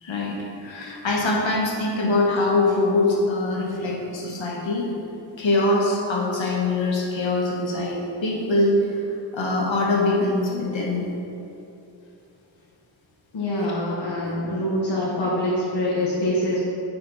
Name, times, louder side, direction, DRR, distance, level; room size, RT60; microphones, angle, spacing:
voice 1, 0.0-4.9 5.4-9.0 9.3-11.0 14.2-14.3, left 2 dB, 85° left, -3 dB, 1.3 m, -23 dB
voice 2, 13.3-16.6, left 1 dB, 65° left, -7 dB, 1.4 m, -25 dB
9.9 x 4.3 x 4.0 m, 2.9 s
wide cardioid pair, 110°, 45 cm